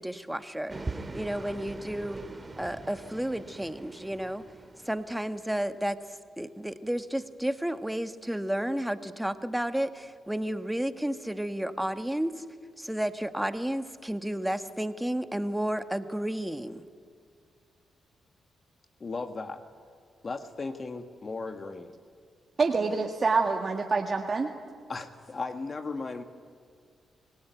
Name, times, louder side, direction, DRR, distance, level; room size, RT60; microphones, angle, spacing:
voice 1, 0.0-2.2 2.6-4.4 4.8-6.0 6.4-12.4 12.8-16.8, right 1 dB, 5° right, 9 dB, 1.4 m, -32 dB
sound 1, 0.7-5.4, right 3 dB, 30° right, 2.0 m, -42 dB
voice 2, 19.0-19.6 20.2-22.0 24.9-26.2, left 3 dB, 45° left, 7 dB, 1.5 m, -36 dB
voice 3, 22.6-24.5, right 4 dB, 45° right, 2 dB, 1.8 m, -26 dB
25.0 x 17.5 x 9.3 m, 2.2 s
supercardioid pair, 55°, 0 cm